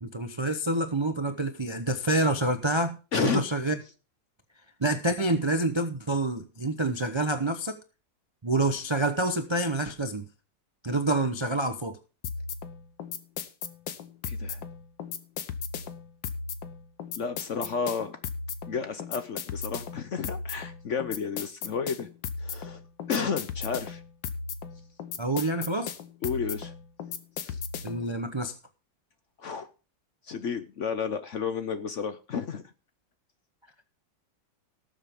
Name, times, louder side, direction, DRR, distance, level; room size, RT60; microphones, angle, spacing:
voice 1, 0.0-3.8 4.8-7.7 8.4-10.2 10.8-12.0 25.2-25.9 27.8-28.6, right 2 dB, 40° right, 7 dB, 0.3 m, -27 dB
voice 2, 3.1-3.4 14.3-14.6 17.2-18.2 18.7-22.1 22.4-22.8 23.1-24.0 26.2-26.7 27.4-27.6 29.4-29.7 30.2-32.6, left 6 dB, 55° left, 10 dB, 0.9 m, -31 dB
sound 1, 12.2-28.1, left 6 dB, 85° left, 1.7 m, -36 dB
18.5 x 7.4 x 3.6 m, 0.34 s
omnidirectional pair, 2.0 m